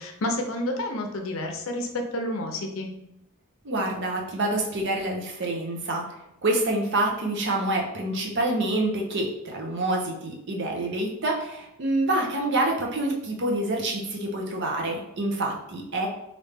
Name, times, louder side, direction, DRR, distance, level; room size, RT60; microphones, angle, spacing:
voice 1, 0.0-2.9, left 1 dB, 70° left, 3 dB, 0.6 m, -30 dB
voice 2, 3.6-6.1 6.4-16.1, right 2 dB, 55° right, 0 dB, 0.7 m, -27 dB
3.2 x 2.5 x 3.3 m, 0.82 s
head